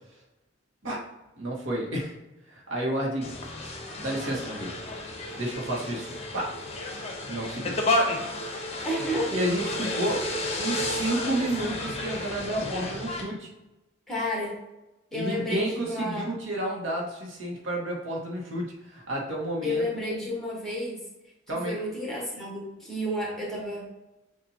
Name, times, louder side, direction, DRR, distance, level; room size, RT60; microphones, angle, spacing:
voice 1, 1.4-2.2 2.5-3.3 4.0-4.7 5.4-6.6 7.3-7.7 9.3-10.3 10.6-13.5 15.1-19.8 21.5-21.8, right 1 dB, 80° right, -2 dB, 1.2 m, -30 dB
sound 1, 3.2-13.2, left 1 dB, 30° left, 0.7 m, -31 dB
voice 2, 8.8-9.3 14.1-14.6 15.1-16.2 19.6-21.1 21.5-23.9, left 1 dB, ahead, -5 dB, 1.2 m, -31 dB
7.0 x 2.6 x 2.7 m, 0.99 s
head